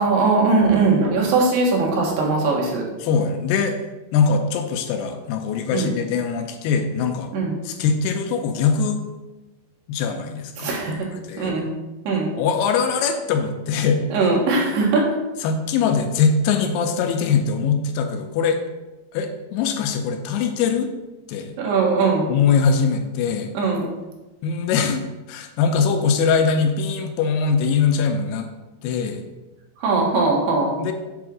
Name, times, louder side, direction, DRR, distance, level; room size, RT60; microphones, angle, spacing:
voice 1, 0.0-2.8 5.7-5.9 7.3-7.6 10.6-11.1 11.4-11.7 12.1-12.3 14.1-15.0 21.6-22.3 23.6-23.9 29.8-30.7, right 3 dB, 80° right, -2 dB, 3.5 m, -20 dB
voice 2, 3.0-3.8 4.1-7.3 7.6-9.0 9.9-10.8 11.1-11.5 12.4-14.0 15.4-18.6 19.1-20.9 21.3-21.5 22.3-23.5 24.4-25.0 25.3-28.5 28.8-29.2 30.8-30.9, left 6 dB, 85° left, 5 dB, 2.6 m, -22 dB
7.8 x 3.6 x 6.2 m, 1.1 s
omnidirectional pair, 4.7 m